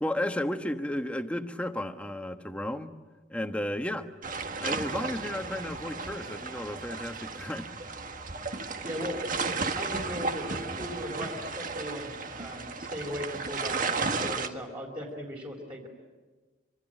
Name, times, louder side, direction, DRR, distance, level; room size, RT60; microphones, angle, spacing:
voice 1, 0.0-2.9 3.3-4.1 4.6-7.7, left 1 dB, 5° left, 7 dB, 1.3 m, -33 dB
sound 1, 4.2-14.5, right 4 dB, 45° right, 1.6 m, -34 dB
voice 2, 8.8-15.9, equal, 25° right, -2 dB, 4.1 m, -38 dB
26.0 x 25.5 x 9.0 m, 1.3 s
head